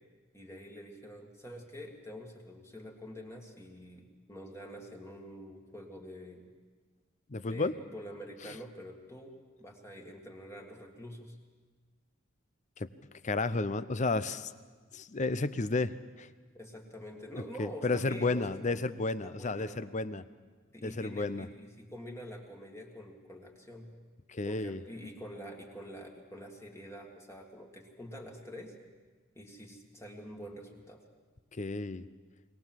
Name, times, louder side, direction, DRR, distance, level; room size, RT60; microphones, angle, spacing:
voice 1, 0.3-6.5 7.4-11.4 16.5-18.8 19.2-19.8 20.7-23.9 24.4-28.7 29.4-31.0, equal, 15° left, 1 dB, 2.0 m, -46 dB
voice 2, 7.3-7.7 8.4-8.6 12.8-12.9 13.2-14.5 14.9-16.3 17.6-20.2 20.8-21.5 24.3-24.8 31.5-32.1, left 3 dB, 35° left, 15 dB, 0.6 m, -32 dB
22.0 x 18.0 x 7.6 m, 1.4 s
head